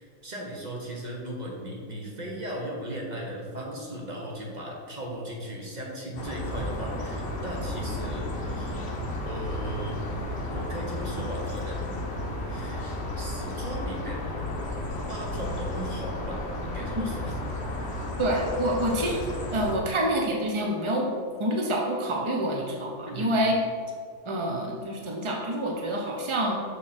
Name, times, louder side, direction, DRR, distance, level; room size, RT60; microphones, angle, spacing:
voice 1, 0.0-8.8 9.2-10.0 10.3-12.0 12.5-14.2 15.1-16.4 16.7-17.4 23.1-23.3, right 1 dB, 30° right, -2 dB, 1.3 m, -37 dB
sound 1, 6.1-19.7, left 1 dB, 45° left, 1.2 m, -33 dB
voice 2, 18.2-19.2 19.5-21.1 21.4-23.6 24.2-26.6, right 1 dB, 45° right, -1 dB, 0.3 m, -27 dB
6.7 x 5.4 x 4.4 m, 2.1 s
omnidirectional pair, 1.7 m